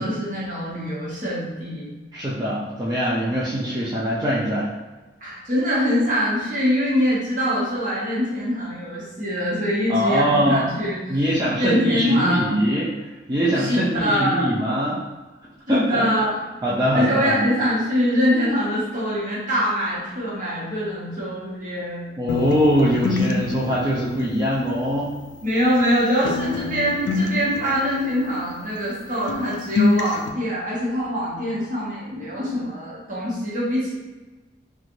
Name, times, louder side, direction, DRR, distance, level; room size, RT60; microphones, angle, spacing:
voice 1, 0.0-1.9 5.2-11.2 11.6-12.6 13.6-14.5 15.7-16.4 16.9-22.1 25.4-33.9, equal, 45° right, -7 dB, 1.0 m, -23 dB
voice 2, 2.1-4.7 9.9-10.7 11.1-15.0 15.7-16.1 16.6-17.5 22.2-25.1, equal, 20° right, -8 dB, 0.4 m, -22 dB
sound 1, 22.3-25.9 26.2-29.0 29.3-30.3, left 3 dB, 75° left, 0.3 m, -27 dB
3.1 x 2.3 x 2.6 m, 1.2 s
head